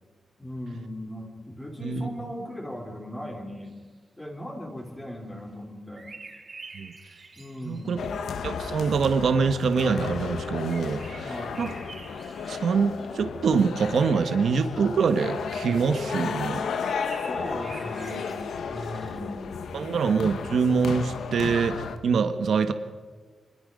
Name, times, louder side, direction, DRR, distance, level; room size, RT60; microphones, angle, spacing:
voice 1, 0.4-3.8 4.2-6.1 7.4-8.1 11.3-11.6 17.3-19.6 19.9-20.0, equal, 15° left, 0 dB, 3.2 m, -38 dB
sound 1, 3.7-3.8 5.9-8.0 10.7-13.1 16.5-19.4, right 3 dB, 40° right, 3.7 m, -47 dB
voice 2, 7.6-8.0 8.4-11.7 12.5-16.7 19.7-22.7, right 5 dB, 70° right, 9 dB, 1.3 m, -25 dB
sound 2, 8.0-22.0, left 6 dB, 85° left, 1.3 m, -33 dB
26.0 x 21.5 x 5.3 m, 1.4 s
wide cardioid pair, 135°, 0 cm